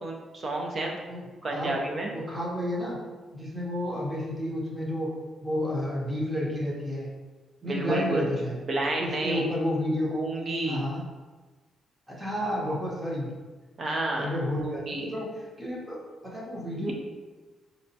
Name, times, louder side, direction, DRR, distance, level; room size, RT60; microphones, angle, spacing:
voice 1, 0.0-1.0 1.4-2.1 7.6-8.2 8.7-9.4 10.1-10.9 13.8-14.3 14.6-15.1 16.8-16.9, right 2 dB, 40° right, 0 dB, 0.6 m, -30 dB
voice 2, 1.1-1.8 2.1-3.0 3.3-5.1 5.4-7.1 7.6-8.6 9.0-10.1 10.7-11.1 12.1-13.3 14.1-15.3 15.6-16.9, left 1 dB, 15° right, -4 dB, 0.9 m, -31 dB
4.0 x 2.2 x 2.7 m, 1.3 s
cardioid pair, 125°, 0 cm